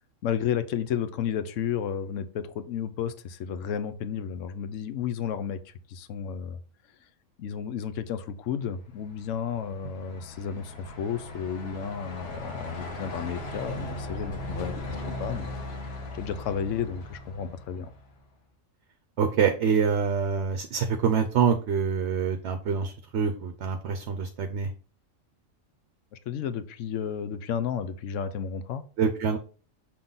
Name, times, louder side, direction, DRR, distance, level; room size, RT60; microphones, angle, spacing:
voice 1, 0.2-6.6 7.4-15.5 16.1-17.9 26.3-28.8, left 8 dB, 75° left, 1.0 m, -32 dB
Truck, 8.9-18.2, left 1 dB, 50° left, 1.4 m, -38 dB
voice 2, 19.2-24.7 29.0-29.4, right 6 dB, 65° right, 0.8 m, -26 dB
6.6 x 3.7 x 3.9 m
omnidirectional pair, 1.4 m